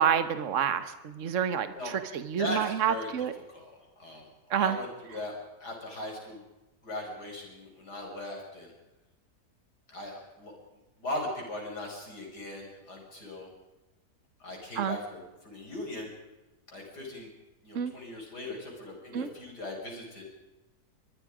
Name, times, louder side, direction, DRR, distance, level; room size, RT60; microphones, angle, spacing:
voice 1, 0.0-1.7 2.1-3.3 4.5-4.8 14.8-15.0 17.7-17.9 19.1-19.3, right 8 dB, 50° right, 11 dB, 1.5 m, -28 dB
voice 2, 2.4-3.1 3.5-4.3 4.5-6.4 6.8-8.7 9.9-10.5 11.0-13.5 14.4-16.1 16.7-17.3 17.6-20.2, left 1 dB, 80° left, 0 dB, 6.6 m, -39 dB
24.5 x 21.0 x 5.1 m, 1.1 s
omnidirectional pair, 1.7 m